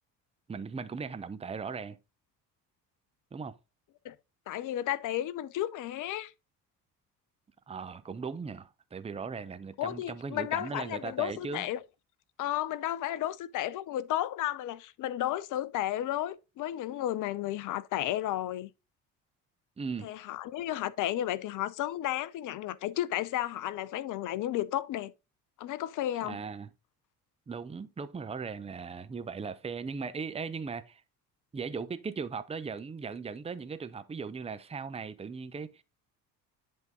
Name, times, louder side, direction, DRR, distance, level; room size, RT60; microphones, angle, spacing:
voice 1, 0.5-2.0 3.3-3.6 7.7-11.7 19.8-20.1 26.2-26.7 27.5-31.0 31.5-35.8, right 5 dB, 15° right, 0.7 m, -38 dB
voice 2, 4.5-6.3 9.8-11.8 12.4-18.7 20.0-25.1 25.6-26.4, left 13 dB, 40° left, 0.6 m, -33 dB
10.5 x 3.6 x 3.9 m
figure-of-eight pair, 50°, 48 cm